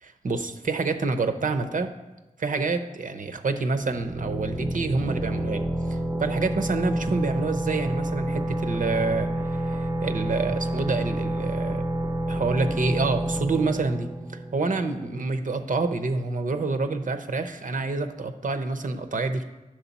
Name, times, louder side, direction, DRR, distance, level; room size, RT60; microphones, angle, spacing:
voice 1, 0.0-1.9 2.4-5.6 5.9-11.8 12.3-14.1 14.5-19.4, right 3 dB, 75° right, 6 dB, 0.7 m, -27 dB
sound 1, 3.8-15.3, right 1 dB, 20° right, 0.6 m, -29 dB
10.0 x 6.4 x 4.1 m, 1.1 s
wide cardioid pair, 60°, 14 cm